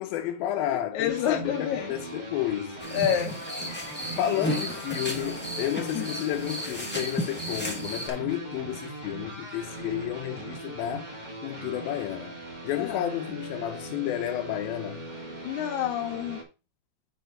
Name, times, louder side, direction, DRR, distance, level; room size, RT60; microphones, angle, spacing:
voice 1, 0.0-2.8 4.2-15.1, left 12 dB, 90° left, 2.5 m, -31 dB
voice 2, 0.9-1.9 2.9-3.3 4.2-4.3 5.9-6.0 12.8-13.0 15.4-16.4, left 10 dB, 70° left, 2.1 m, -28 dB
sound 1, 1.1-16.4, right 3 dB, 30° right, 0.7 m, -40 dB
sound 2, 2.8-8.1, left 1 dB, 5° left, 0.7 m, -34 dB
8.9 x 4.5 x 3.8 m
omnidirectional pair, 4.1 m